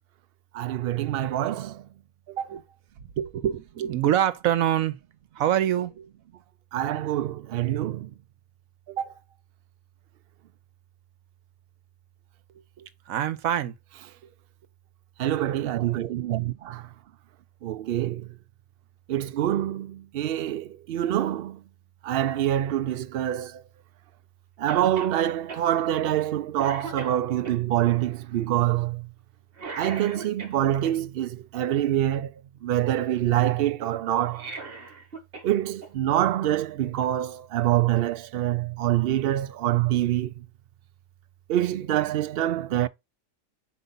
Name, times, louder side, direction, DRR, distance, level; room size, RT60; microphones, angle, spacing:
voice 1, 0.5-1.8 2.3-2.5 6.7-8.1 8.9-9.1 15.2-16.9 17.6-18.3 19.1-21.6 22.0-23.6 24.6-29.1 29.8-32.3 32.6-34.5 35.4-40.3 41.5-42.9, right 12 dB, 65° right, 0.6 m, -26 dB
voice 2, 3.0-5.0 5.3-6.1 12.8-13.7, right 11 dB, 85° right, 1.2 m, -25 dB
Cough, 24.7-25.2 25.5-25.6 26.1-26.3 26.6-27.6 29.6-30.9 34.2-35.5 35.8-35.9 37.0-37.1, right 4 dB, 45° right, 1.6 m, -39 dB
6.9 x 4.7 x 3.8 m
omnidirectional pair, 1.4 m